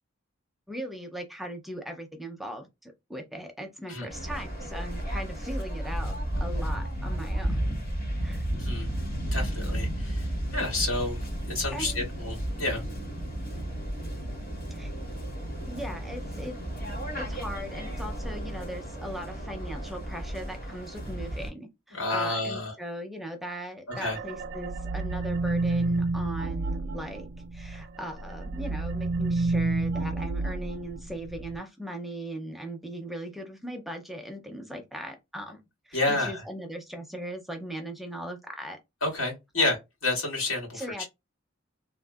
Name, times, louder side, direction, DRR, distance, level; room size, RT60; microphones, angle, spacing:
voice 1, 0.7-6.1 6.4-7.8 8.2-8.4 10.5-10.6 11.7-12.0 14.7-14.9 15.7-16.6 17.2-27.3 27.5-35.6 35.9-38.8 39.6-39.7 40.7-41.0, right 1 dB, ahead, 0.5 m, -39 dB
Waves surf, 4.1-21.5, right 1 dB, 50° left, 1.9 m, -33 dB
voice 2, 8.5-8.9 9.3-10.3 10.5-11.2 11.5-12.8 21.9-22.7 24.0-24.2 35.9-36.4 39.0-40.8, left 2 dB, 90° left, 2.1 m, -29 dB
sound 1, 23.9-27.8 28.2-31.6, right 3 dB, 55° right, 0.4 m, -30 dB
3.5 x 2.3 x 2.3 m
head